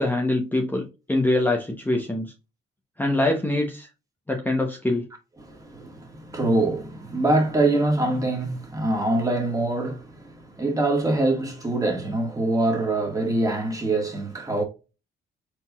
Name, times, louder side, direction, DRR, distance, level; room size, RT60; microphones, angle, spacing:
voice 1, 0.0-2.3 3.0-3.9 4.3-5.0, left 2 dB, 10° left, 0.9 m, -24 dB
voice 2, 5.4-14.6, right 2 dB, 15° right, 1.9 m, -24 dB
4.5 x 3.8 x 2.4 m
cardioid pair, 90°, 20 cm